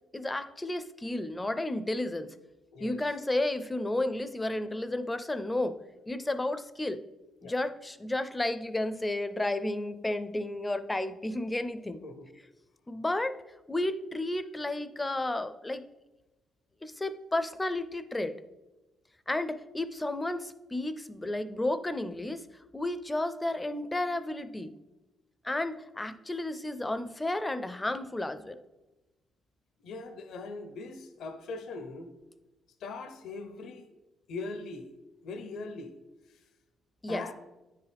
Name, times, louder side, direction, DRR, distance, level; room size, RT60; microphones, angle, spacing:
voice 1, 0.1-2.3 2.8-5.8 6.1-7.0 7.4-12.0 12.9-13.4 13.7-15.9 16.8-18.4 19.3-22.4 22.7-24.7 25.4-28.6 37.0-37.3, left 1 dB, 15° left, 11 dB, 0.4 m, -32 dB
voice 2, 29.8-32.1 32.8-33.9 34.3-34.9 35.2-35.9 37.1-37.3, left 3 dB, 75° left, 8 dB, 0.7 m, -40 dB
9.2 x 4.7 x 3.4 m, 1.1 s
cardioid pair, 90°, 0 cm